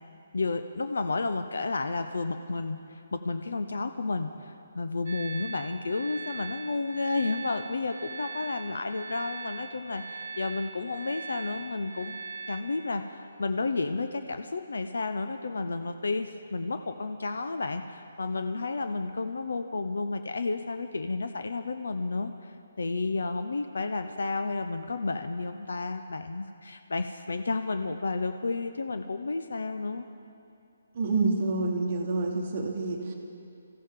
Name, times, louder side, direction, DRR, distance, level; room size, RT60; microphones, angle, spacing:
voice 1, 0.3-12.2 12.5-30.0, left 3 dB, 80° left, 8 dB, 0.6 m, -32 dB
sound 1, 5.1-12.6, right 5 dB, 60° right, 1.0 m, -41 dB
voice 2, 30.9-33.1, right 3 dB, 30° right, 1 dB, 1.0 m, -28 dB
24.5 x 15.0 x 3.7 m, 2.7 s
hypercardioid pair, 180°, 0 cm